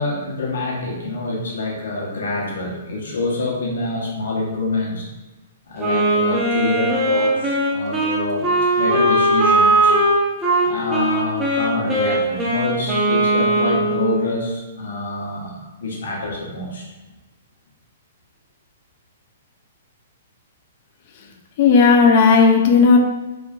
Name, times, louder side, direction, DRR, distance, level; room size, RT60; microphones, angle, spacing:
voice 1, 0.0-5.1 5.7-8.5 8.7-10.0 10.6-16.9, left 2 dB, 85° left, -2 dB, 0.9 m, -26 dB
Wind instrument woodwind instrument, 5.8-14.2, right 1 dB, 10° right, 0.6 m, -19 dB
voice 2, 21.6-23.0, left 5 dB, 45° left, 2 dB, 0.4 m, -13 dB
3.0 x 2.4 x 2.4 m, 1.1 s
hypercardioid pair, 150°, 0 cm